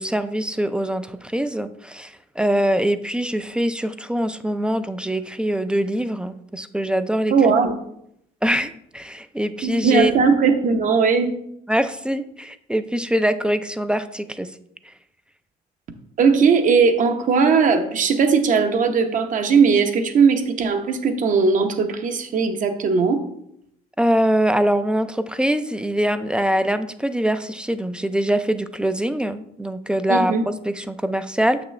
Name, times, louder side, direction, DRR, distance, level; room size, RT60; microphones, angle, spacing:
voice 1, 0.0-7.3 8.4-10.1 11.7-14.6 14.8-14.9 24.0-31.6, right 1 dB, 5° right, 11 dB, 0.3 m, -23 dB
voice 2, 7.3-7.8 9.6-11.3 16.2-23.2 30.1-30.4, right 5 dB, 50° right, 7 dB, 0.9 m, -18 dB
6.9 x 6.0 x 3.2 m, 0.74 s
cardioid pair, 110°, 17 cm